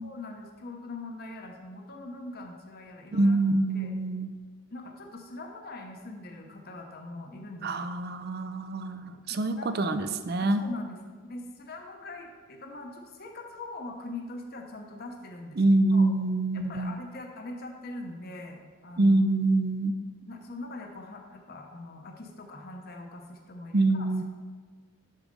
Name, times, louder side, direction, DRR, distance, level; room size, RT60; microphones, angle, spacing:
voice 1, 0.0-3.4 3.7-3.9 4.7-7.7 9.3-9.7 10.4-15.6 15.9-16.1 16.5-19.2 20.2-24.1, left 2 dB, 45° left, 2 dB, 0.8 m, -42 dB
voice 2, 3.1-4.3 7.6-10.6 15.6-17.0 19.0-19.9 23.7-24.2, right 2 dB, 45° right, 10 dB, 0.5 m, -25 dB
8.3 x 6.4 x 5.2 m, 1.5 s
head